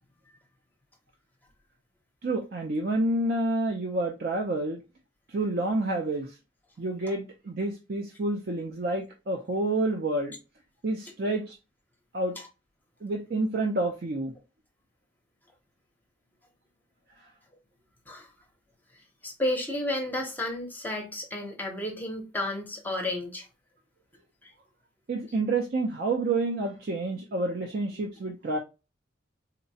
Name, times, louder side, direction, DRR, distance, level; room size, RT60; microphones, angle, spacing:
voice 1, 2.2-4.8 5.3-6.4 6.8-10.3 10.8-11.6 12.1-12.4 13.0-14.3 25.1-28.6, right 2 dB, 50° right, 0.5 m, -29 dB
voice 2, 19.2-23.5 24.4-24.5, left 1 dB, 10° left, 0.7 m, -32 dB
3.9 x 2.2 x 2.6 m
head